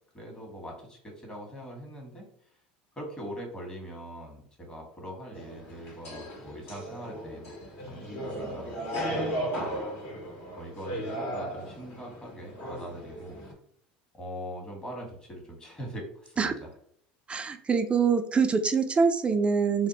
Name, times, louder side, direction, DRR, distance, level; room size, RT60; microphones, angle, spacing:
voice 1, 0.1-2.3 2.9-7.5 7.9-9.8 10.6-13.4 14.1-16.7, equal, 15° left, 0 dB, 1.3 m, -42 dB
sound 1, 5.3-13.5, equal, 50° left, 1.4 m, -36 dB
voice 2, 17.3-19.9, right 5 dB, 20° right, 8 dB, 0.4 m, -24 dB
2.6 x 2.2 x 4.0 m, 0.66 s
supercardioid pair, 95°, 5 cm